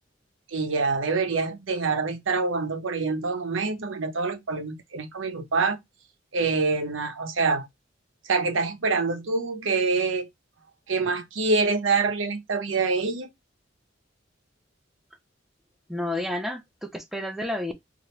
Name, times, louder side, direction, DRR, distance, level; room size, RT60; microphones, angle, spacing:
voice 1, 0.5-5.8 6.3-7.7 8.3-10.3 10.9-13.3, right 4 dB, 85° right, 0.7 m, -26 dB
voice 2, 15.9-17.7, left 1 dB, ahead, 0.4 m, -30 dB
2.9 x 2.5 x 3.1 m
head